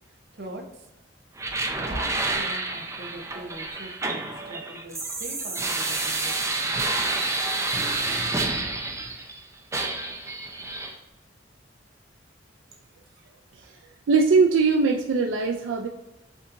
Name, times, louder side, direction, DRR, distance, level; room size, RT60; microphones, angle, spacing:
voice 1, 0.3-0.9 1.8-6.8, right 1 dB, 60° right, 3 dB, 0.8 m, -42 dB
sound 1, 1.4-9.4 9.7-10.9, right 2 dB, 15° right, 0.5 m, -29 dB
voice 2, 14.1-15.9, right 4 dB, 85° right, 2 dB, 0.4 m, -21 dB
7.0 x 2.7 x 2.6 m, 0.97 s
head